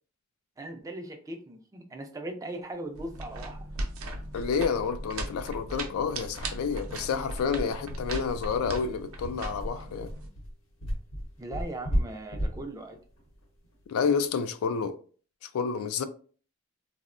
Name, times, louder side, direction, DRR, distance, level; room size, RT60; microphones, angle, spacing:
voice 1, 0.6-3.7 11.4-13.0, right 1 dB, 15° right, 0.3 m, -39 dB
sound 1, 2.9-10.3, right 1 dB, 75° right, 0.5 m, -38 dB
sound 2, 4.0-4.1 4.4-4.5 4.8-5.0 5.4-5.5 5.9-14.3, equal, 75° left, 0.8 m, -35 dB
voice 2, 4.3-10.1 13.9-15.0 15.4-16.0, left 6 dB, 90° left, 0.3 m, -29 dB
3.5 x 2.0 x 2.4 m
head